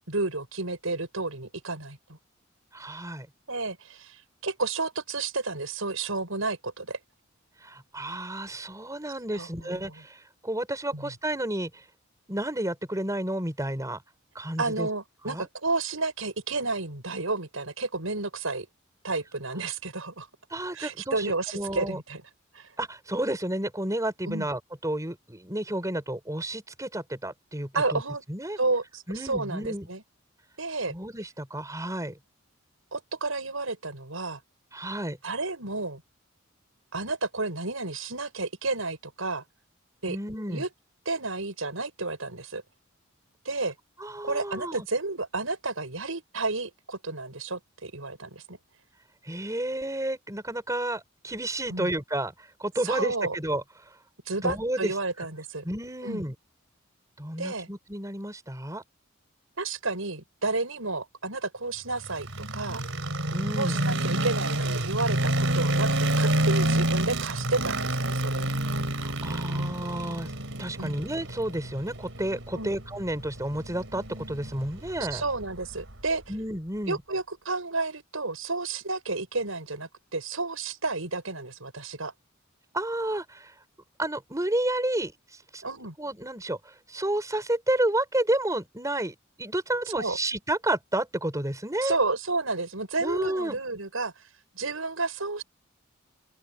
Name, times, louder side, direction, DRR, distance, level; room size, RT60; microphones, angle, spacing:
voice 1, 0.0-2.2 3.5-4.2 4.4-7.0 9.3-9.9 10.9-11.1 14.6-18.7 19.0-20.3 20.7-22.2 22.5-22.7 24.2-24.5 27.7-28.2 28.6-30.0 30.6-30.9 32.9-34.4 35.2-36.0 36.9-39.4 40.0-40.2 40.5-40.7 41.1-42.6 43.4-43.7 44.2-48.6 51.7-51.9 52.8-53.4 54.3-55.6 56.0-56.2 57.4-57.7 59.6-62.8 63.6-65.9 66.2-68.5 70.8-71.0 72.5-72.7 75.1-76.2 76.9-82.1 85.6-85.9 89.9-90.2 91.8-94.1 94.5-95.4, right 3 dB, 90° right, 5.9 m, -31 dB
voice 2, 2.7-3.3 7.6-11.8 12.3-14.0 14.3-14.9 15.2-15.5 20.5-22.0 22.8-28.0 28.3-28.6 29.1-29.9 30.9-32.2 34.7-35.2 40.1-40.6 44.0-44.9 49.2-52.3 52.6-53.6 54.4-54.9 55.6-56.3 57.2-58.8 63.3-63.8 69.0-70.3 70.6-75.2 76.3-77.0 82.7-83.5 84.0-85.1 85.5-85.6 86.0-92.0 93.0-93.6, right 1 dB, 15° right, 5.8 m, -31 dB
sound 1, 62.0-76.1, right 1 dB, 65° right, 5.2 m, -29 dB
open air
head